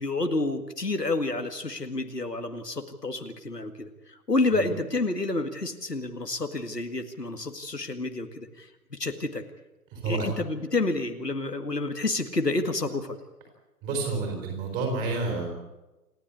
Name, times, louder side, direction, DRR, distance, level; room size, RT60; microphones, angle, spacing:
voice 1, 0.0-3.9 4.3-9.4 10.0-13.2, left 2 dB, 85° left, 7 dB, 2.1 m, -29 dB
voice 2, 9.9-10.3 13.8-15.5, right 3 dB, 15° right, 2 dB, 4.5 m, -29 dB
28.0 x 11.5 x 8.6 m, 1.0 s
figure-of-eight pair, 140°, 48 cm